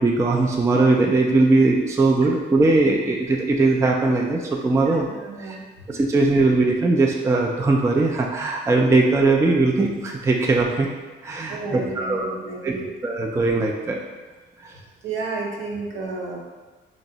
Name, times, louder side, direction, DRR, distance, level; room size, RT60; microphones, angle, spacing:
voice 1, 0.0-5.1 5.5-5.6 5.9-10.9 11.2-12.3 12.6-12.7 13.0-14.0 14.6-14.7, right 3 dB, 15° right, 0 dB, 0.3 m, -20 dB
voice 2, 4.8-5.6 5.9-6.0 11.5-12.9 15.0-16.4, right 3 dB, 75° right, -2 dB, 0.8 m, -31 dB
3.4 x 2.0 x 3.8 m, 1.3 s
cardioid pair, 90°, 20 cm